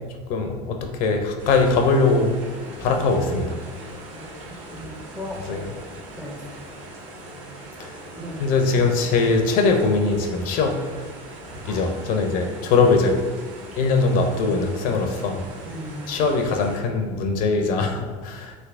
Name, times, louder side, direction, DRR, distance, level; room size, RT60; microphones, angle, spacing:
voice 1, 0.3-2.3 2.8-3.6 5.5-5.6 8.4-10.8 11.7-13.2 13.7-15.4 16.1-18.6, left 4 dB, 55° left, 4 dB, 0.5 m, -21 dB
sound 1, 1.4-16.8, right 1 dB, 85° right, 0.8 m, -40 dB
voice 2, 4.7-5.6 6.2-6.4 8.2-8.4 11.7-11.8 15.7-16.1, left 1 dB, 5° right, -1 dB, 0.4 m, -36 dB
3.3 x 2.8 x 2.4 m, 1.4 s
supercardioid pair, 105°, 17 cm